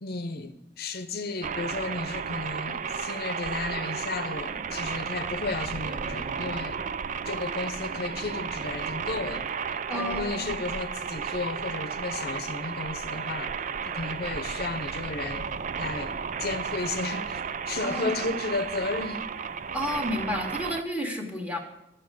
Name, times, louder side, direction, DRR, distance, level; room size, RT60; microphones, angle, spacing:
voice 1, 0.0-6.8 7.2-13.6 13.9-15.5 15.8-19.2, left 3 dB, 60° left, 0.8 m, -33 dB
sound 1, 1.4-20.8, right 6 dB, 45° right, 0.4 m, -33 dB
voice 2, 9.9-10.5 17.8-18.3 19.7-21.6, equal, 5° right, 1.7 m, -31 dB
10.5 x 6.6 x 8.9 m
head